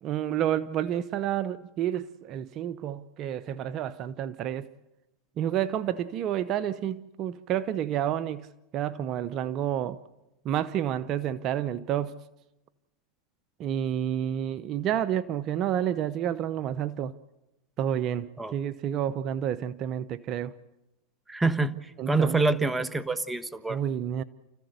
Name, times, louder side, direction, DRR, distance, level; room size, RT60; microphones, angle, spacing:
voice 1, 0.0-4.7 5.4-10.0 10.4-12.1 13.6-17.1 17.8-20.5 22.0-22.4 23.7-24.2, right 10 dB, 45° right, 0.8 m, -30 dB
voice 2, 21.3-21.8 22.1-23.8, right 3 dB, 10° right, 1.4 m, -26 dB
30.0 x 15.0 x 8.1 m
hypercardioid pair, 110°, 0 cm